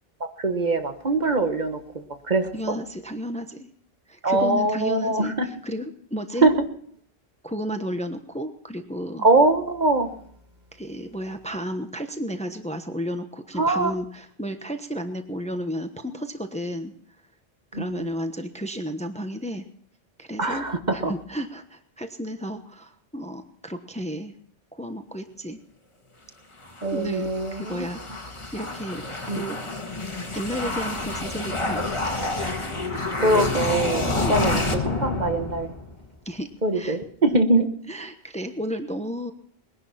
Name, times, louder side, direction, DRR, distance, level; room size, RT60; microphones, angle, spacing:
voice 1, 0.4-2.5 4.2-5.5 6.4-6.5 9.2-10.1 13.6-13.9 17.7-18.1 20.4-21.1 26.8-27.9 29.3-29.4 33.2-34.0 34.3-35.7 36.6-37.7, right 2 dB, 45° right, 6 dB, 1.5 m, -22 dB
voice 2, 2.5-3.7 4.1-6.5 7.4-9.3 10.7-16.9 17.7-19.6 20.2-20.7 20.9-24.3 24.8-25.6 26.9-29.6 30.3-31.9 34.1-34.4 36.2-37.0 37.3-37.4 37.9-39.3, equal, 5° left, 7 dB, 1.0 m, -32 dB
sound 1, 26.7-36.0, left 2 dB, 30° left, 1.7 m, -29 dB
21.0 x 11.0 x 5.8 m, 0.63 s
omnidirectional pair, 1.0 m